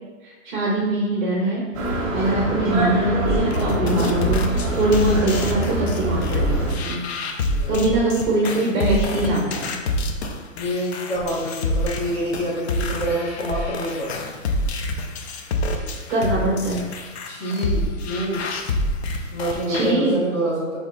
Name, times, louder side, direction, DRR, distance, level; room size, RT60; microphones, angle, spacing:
voice 1, 0.4-6.5 6.8-7.0 7.7-9.7 16.1-16.8 19.7-20.2, right 1 dB, 35° right, -5 dB, 1.1 m, -22 dB
sound 1, 1.7-6.7, right 1 dB, 15° right, 0.8 m, -25 dB
sound 2, 3.2-19.9, left 1 dB, 55° left, 0.6 m, -27 dB
voice 2, 7.4-7.8 10.5-14.1 17.2-18.5 19.3-20.8, right 1 dB, 15° left, -8 dB, 1.2 m, -27 dB
4.3 x 3.3 x 3.8 m, 1.3 s
hypercardioid pair, 165°, 40 cm